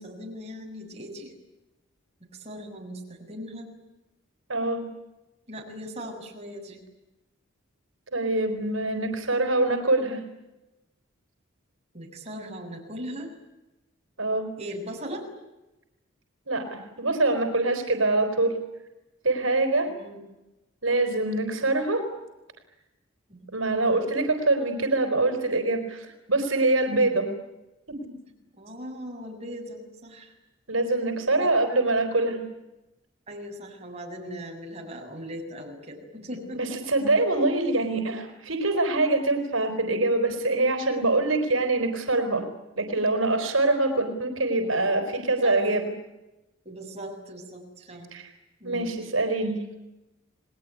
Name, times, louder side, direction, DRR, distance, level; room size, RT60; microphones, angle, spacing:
voice 1, 0.0-1.3 2.2-3.7 5.5-6.8 11.9-13.3 14.6-15.3 19.9-20.2 23.3-23.5 28.6-30.3 31.4-31.5 33.3-36.8 45.4-45.7 46.7-48.1 48.6-49.0, equal, 30° right, 1 dB, 7.0 m, -39 dB
voice 2, 4.5-4.8 8.1-10.2 14.2-14.5 16.5-18.5 19.2-19.9 20.8-22.1 23.5-27.3 27.9-28.0 30.7-32.4 36.5-42.5 42.8-45.9 48.1-48.3 48.6-49.6, right 2 dB, 80° right, 8 dB, 4.2 m, -24 dB
30.0 x 20.5 x 9.6 m, 1.0 s
head